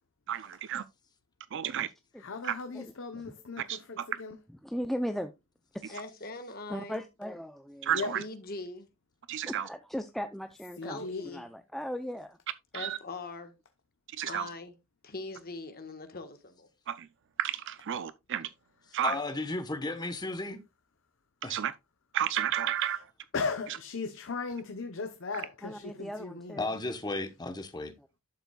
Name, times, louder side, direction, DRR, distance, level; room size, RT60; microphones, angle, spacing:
voice 1, 0.3-0.8 1.5-1.9 2.4-2.6 3.6-4.1 7.8-8.2 9.3-9.7 12.7-13.0 14.2-14.5 16.9-17.1 17.4-18.5 18.9-19.2 21.5-21.7 22.1-23.1, right 10 dB, 55° right, 0.4 m, -32 dB
voice 2, 2.2-4.4 7.9-8.1 10.8-11.2 22.8-22.9 23.3-26.6, left 4 dB, 60° left, 0.8 m, -37 dB
voice 3, 2.7-3.2 4.6-5.3 5.8-6.0 6.7-7.9 9.5-11.0 11.3-12.4 25.6-26.7, equal, ahead, 0.5 m, -37 dB
voice 4, 5.9-7.0 7.9-8.9 10.8-11.4 12.7-13.5 14.3-14.7 15.0-16.7, left 3 dB, 45° left, 1.4 m, -42 dB
voice 5, 19.0-20.6 21.4-21.5 26.6-27.9, left 2 dB, 20° left, 1.0 m, -34 dB
11.5 x 7.1 x 2.3 m
head